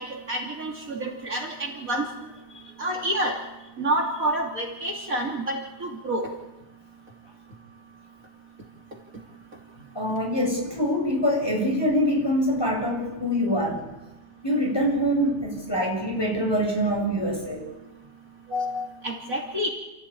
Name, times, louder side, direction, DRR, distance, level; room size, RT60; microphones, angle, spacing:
voice 1, 0.0-2.3 2.8-3.4 3.8-6.3 18.5-19.7, right 1 dB, 55° right, 0 dB, 3.3 m, -28 dB
voice 2, 9.9-13.8 14.4-17.7, equal, 15° left, -1 dB, 7.7 m, -24 dB
28.5 x 15.0 x 8.8 m, 1.0 s
omnidirectional pair, 1.8 m